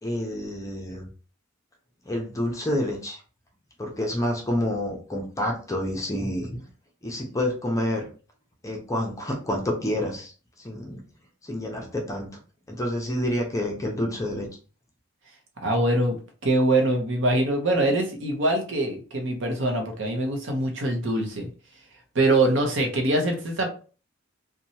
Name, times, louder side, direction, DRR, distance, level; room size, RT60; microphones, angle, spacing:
voice 1, 0.0-1.1 2.1-3.2 3.8-6.6 7.0-8.1 8.6-10.3 10.6-11.0 11.4-12.4 12.7-14.5, left 1 dB, 15° left, 1 dB, 0.6 m, -28 dB
voice 2, 15.6-16.2 16.4-21.5 22.1-23.7, right 1 dB, 60° right, 2 dB, 0.7 m, -23 dB
2.9 x 2.2 x 2.7 m, 0.37 s
head